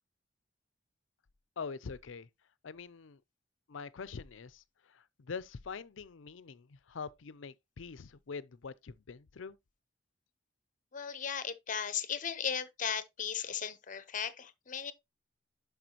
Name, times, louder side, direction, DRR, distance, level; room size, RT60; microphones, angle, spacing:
voice 1, 1.6-2.3 2.6-3.2 3.7-9.6, left 5 dB, 75° left, 0.5 m, -44 dB
voice 2, 10.9-14.9, left 7 dB, 40° left, 0.8 m, -36 dB
11.0 x 4.9 x 2.9 m
head